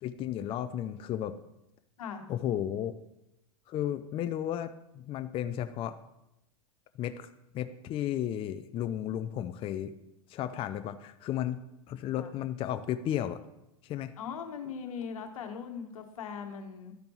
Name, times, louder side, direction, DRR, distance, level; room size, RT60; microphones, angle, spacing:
voice 1, 0.0-1.4 2.3-3.0 3.7-5.9 7.0-7.3 7.5-9.9 10.3-13.4 13.8-14.1, left 11 dB, 30° left, 10 dB, 0.4 m, -34 dB
voice 2, 14.2-16.9, left 6 dB, 85° left, 5 dB, 1.2 m, -40 dB
12.5 x 5.1 x 3.0 m, 0.85 s
hypercardioid pair, 115°, 17 cm